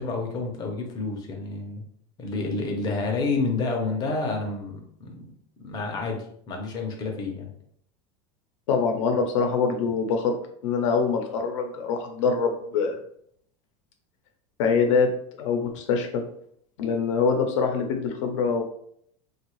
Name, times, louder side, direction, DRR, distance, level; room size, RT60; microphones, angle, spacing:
voice 1, 0.0-1.8 2.2-5.3 5.6-7.5, left 3 dB, 25° left, 2 dB, 0.6 m, -29 dB
voice 2, 8.7-10.3 10.6-13.0 14.6-15.1 15.4-16.2 16.8-18.6, left 5 dB, 80° left, 4 dB, 0.6 m, -24 dB
3.5 x 2.3 x 3.0 m, 0.67 s
supercardioid pair, 170°, 16 cm